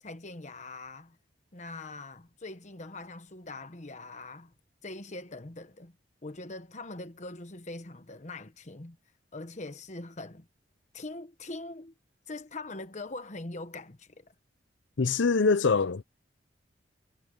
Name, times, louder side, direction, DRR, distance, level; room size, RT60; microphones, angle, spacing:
voice 1, 0.0-1.2 1.5-4.5 4.8-5.9 6.2-9.0 9.3-10.5 10.9-11.9 12.3-14.3, left 2 dB, 40° left, 1.2 m, -42 dB
voice 2, 15.0-16.0, left 4 dB, 85° left, 0.7 m, -24 dB
head